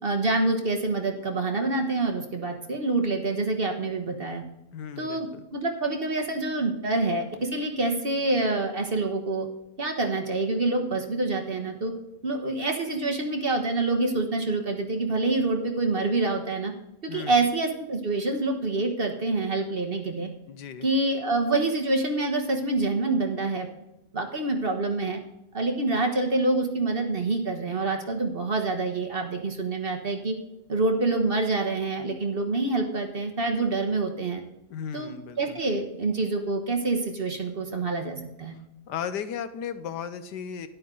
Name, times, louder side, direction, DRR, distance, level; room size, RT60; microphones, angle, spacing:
voice 1, 0.0-4.4 5.0-9.5 9.8-11.9 12.2-16.7 17.0-20.3 20.8-23.7 24.1-25.2 25.5-30.3 30.7-34.4 34.9-38.5, right 2 dB, 35° right, 3 dB, 1.3 m, -26 dB
voice 2, 4.7-5.5 17.1-17.5 20.5-20.9 34.7-35.6 38.9-40.7, left 8 dB, 85° left, 11 dB, 1.4 m, -35 dB
12.5 x 10.5 x 3.8 m, 0.89 s
omnidirectional pair, 1.8 m